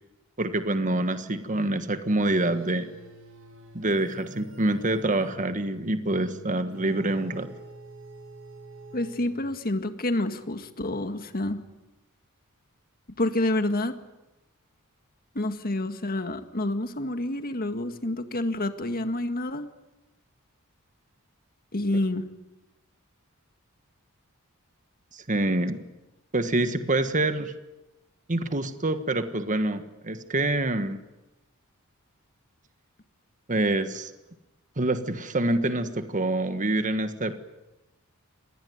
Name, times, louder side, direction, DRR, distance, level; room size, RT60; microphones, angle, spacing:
voice 1, 0.4-2.9 3.7-7.5 25.1-25.8 26.3-27.5 28.3-31.0 33.5-34.1 34.8-37.4, right 2 dB, 35° right, 9 dB, 1.5 m, -26 dB
sound 1, 2.2-9.7, right 1 dB, 65° right, 6.4 m, -47 dB
voice 2, 8.9-11.6 13.2-13.9 15.4-19.7 21.7-22.2, left 1 dB, 45° left, 8 dB, 1.9 m, -28 dB
26.0 x 20.5 x 9.5 m, 1.0 s
head